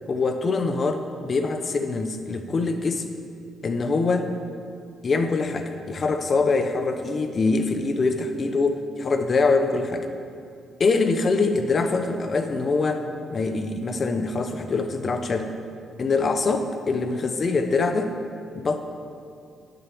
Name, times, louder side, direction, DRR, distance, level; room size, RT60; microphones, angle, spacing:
voice 1, 0.1-3.0 3.6-4.3 5.0-10.0 10.8-15.5 16.0-18.1 18.5-18.9, left 3 dB, 40° left, 7 dB, 1.0 m, -24 dB
10.0 x 7.9 x 6.2 m, 2.4 s
cardioid pair, 90°, 0 cm